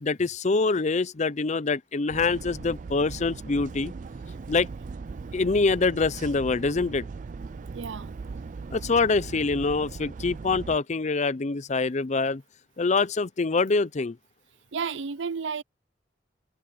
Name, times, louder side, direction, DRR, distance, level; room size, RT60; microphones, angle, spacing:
voice 1, 0.0-3.9 4.5-4.7 5.3-7.1 8.7-12.4 12.8-14.2, left 3 dB, 40° left, 0.6 m, -25 dB
sound 1, 2.1-10.8, right 4 dB, 45° right, 0.4 m, -39 dB
voice 2, 7.7-8.1 14.7-15.6, right 5 dB, 85° right, 0.6 m, -32 dB
head